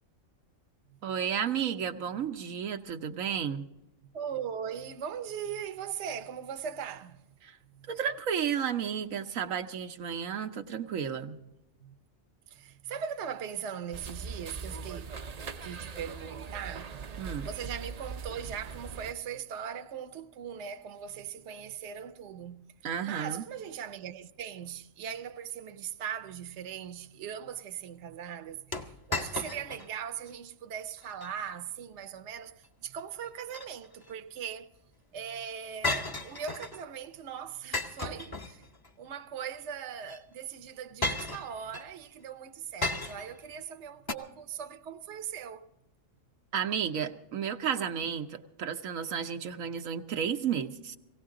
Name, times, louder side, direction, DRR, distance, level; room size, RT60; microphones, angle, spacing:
voice 1, 1.0-3.6 7.4-7.5 7.9-11.4 17.2-17.5 22.8-23.4 46.5-51.0, right 8 dB, 90° right, 1.3 m, -32 dB
voice 2, 4.1-7.2 7.7-7.9 11.8-11.9 12.5-15.1 15.6-22.7 23.0-34.7 35.1-38.6 39.0-45.7, right 8 dB, 65° right, 1.0 m, -40 dB
sound 1, 13.9-19.1, right 5 dB, 45° right, 0.5 m, -41 dB
sound 2, 28.7-29.9 30.3-30.4 31.0-31.3 33.2-34.1 35.8-36.8 37.7-38.9 40.0-40.2 41.0-41.9 42.8-43.4 44.1-44.2, left 2 dB, 20° left, 0.7 m, -34 dB
18.0 x 17.5 x 3.7 m
omnidirectional pair, 1.3 m